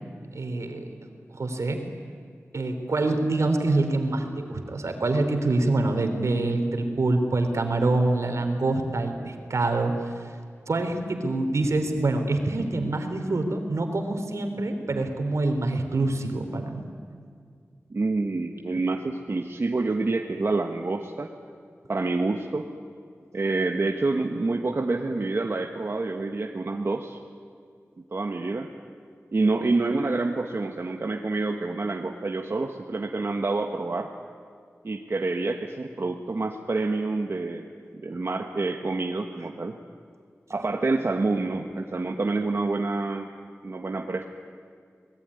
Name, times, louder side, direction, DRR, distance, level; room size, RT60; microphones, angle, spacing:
voice 1, 0.3-0.9 1.3-1.8 2.5-9.9 10.7-16.8, right 2 dB, 75° right, 6 dB, 3.3 m, -25 dB
voice 2, 17.9-21.3 21.9-22.7 23.3-27.2 28.1-28.7 29.3-34.1 34.8-37.6 38.0-39.8 40.5-43.3 43.6-44.2, right 3 dB, 55° right, 3 dB, 1.4 m, -27 dB
25.5 x 20.0 x 9.8 m, 2.2 s
wide cardioid pair, 95°, 5 cm